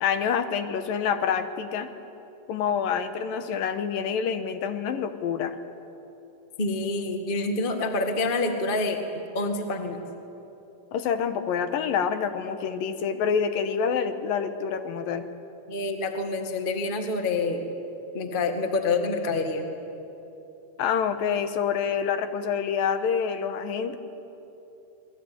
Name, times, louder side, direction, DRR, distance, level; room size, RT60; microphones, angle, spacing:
voice 1, 0.0-1.9 2.5-5.5 10.9-15.2 20.8-24.0, left 7 dB, 70° left, 9 dB, 2.6 m, -27 dB
voice 2, 6.6-9.0 9.3-10.0 15.7-17.6 18.1-19.7, left 3 dB, 85° left, 5 dB, 0.4 m, -27 dB
27.0 x 21.5 x 9.4 m, 3.0 s
omnidirectional pair, 4.7 m